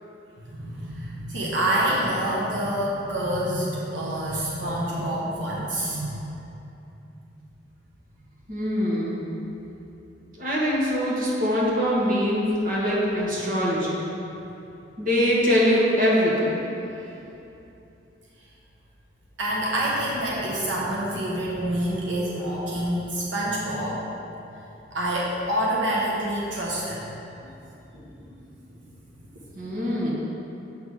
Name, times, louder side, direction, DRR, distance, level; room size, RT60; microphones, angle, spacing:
voice 1, 0.5-6.2 17.0-17.1 19.4-24.1 24.9-27.1, right 1 dB, 90° right, -5 dB, 1.1 m, -27 dB
voice 2, 8.5-9.3 10.3-14.0 15.0-16.6 29.6-30.1, equal, 50° right, -6 dB, 1.6 m, -23 dB
7.7 x 3.6 x 6.4 m, 2.9 s
head